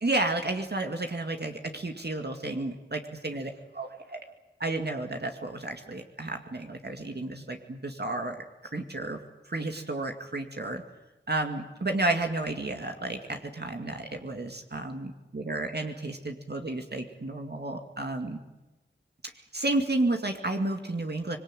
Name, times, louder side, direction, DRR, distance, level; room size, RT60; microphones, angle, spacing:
voice 1, 0.0-3.5 3.8-4.2 4.6-8.4 8.7-9.2 9.5-10.8 11.3-18.4 19.2-21.4, right 2 dB, 55° right, 4 dB, 2.3 m, -32 dB
25.0 x 22.0 x 9.1 m, 1.0 s
wide cardioid pair, 50°, 20 cm